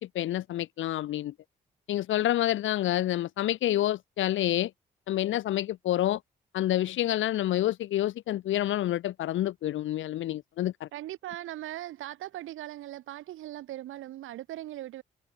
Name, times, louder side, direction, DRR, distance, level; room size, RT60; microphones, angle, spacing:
voice 1, 0.0-1.3 1.9-4.7 5.1-6.2 6.5-10.9, left 13 dB, 75° left, 1.2 m, -28 dB
voice 2, 10.9-15.0, right 14 dB, 80° right, 6.4 m, -39 dB
hypercardioid pair, 40°, 20 cm